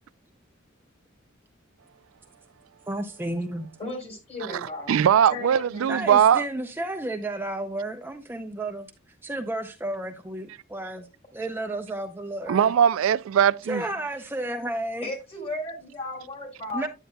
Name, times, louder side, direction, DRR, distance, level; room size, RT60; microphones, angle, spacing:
voice 1, 2.9-3.7 5.9-8.9 9.2-12.7 13.7-15.1 16.7-16.9, right 1 dB, 10° right, 0.5 m, -32 dB
voice 2, 3.8-4.9 5.3-5.9 15.0-16.9, left 1 dB, 30° left, 3.4 m, -35 dB
voice 3, 4.9-6.4 12.5-13.8, right 8 dB, 80° right, 0.3 m, -20 dB
9.3 x 9.0 x 2.2 m
head